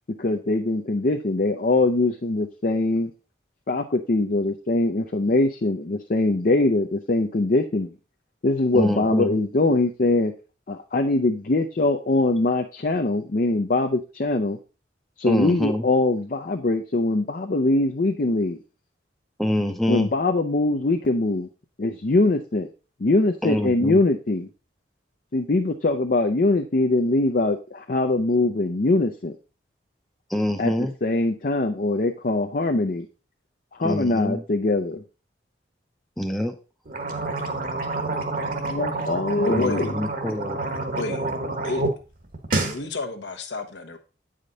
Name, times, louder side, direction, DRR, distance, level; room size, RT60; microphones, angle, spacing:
voice 1, 0.2-3.1 3.7-8.0 8.4-10.3 10.7-14.6 15.2-18.6 19.9-21.5 21.8-22.7 23.0-24.5 25.3-29.4 30.6-30.7 31.0-33.1 33.7-35.0 38.6-39.9, left 2 dB, 50° left, 0.6 m, -22 dB
voice 2, 8.7-9.3 15.3-15.8 19.4-20.1 23.4-24.0 30.3-30.9 33.8-34.4 36.2-36.5 39.5-40.6, left 1 dB, ahead, 0.6 m, -25 dB
sound 1, 36.8-41.9 42.2-42.8, right 2 dB, 50° right, 1.2 m, -28 dB
voice 3, 39.4-39.9 41.0-41.3 41.6-41.8 42.6-44.0, left 3 dB, 75° left, 1.1 m, -29 dB
8.8 x 5.1 x 3.9 m
head